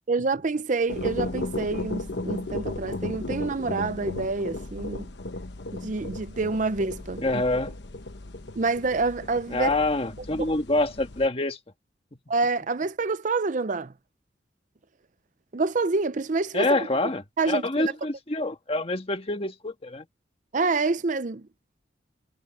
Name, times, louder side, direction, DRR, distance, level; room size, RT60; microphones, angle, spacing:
voice 1, 0.1-5.1 5.7-7.4 8.6-9.7 10.4-10.5 12.3-13.9 15.5-16.9 17.4-17.9 20.5-21.4, right 3 dB, 45° right, 0.6 m, -27 dB
sound 1, 0.9-11.3, left 2 dB, 70° left, 1.0 m, -35 dB
voice 2, 7.2-7.7 9.5-11.6 16.5-20.0, left 2 dB, 35° left, 1.6 m, -26 dB
head